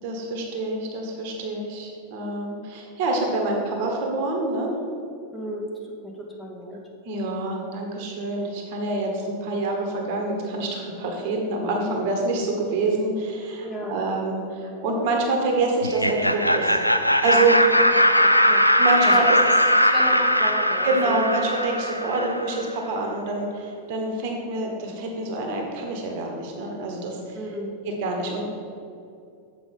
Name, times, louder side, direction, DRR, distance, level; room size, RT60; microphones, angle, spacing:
voice 1, 0.0-4.8 7.0-16.8 17.2-17.6 18.8-19.4 20.8-27.4 27.8-28.4, right 2 dB, 50° right, 1 dB, 1.3 m, -26 dB
voice 2, 5.3-5.7 6.0-6.8 13.6-14.0 17.7-18.6 19.0-19.3 19.9-21.3 22.0-22.2 27.3-27.8, equal, 10° left, -2 dB, 1.4 m, -34 dB
Laughter, 15.8-22.6, equal, 90° left, 0.3 m, -20 dB
7.8 x 5.2 x 5.4 m, 2.5 s
figure-of-eight pair, 90°, 0 cm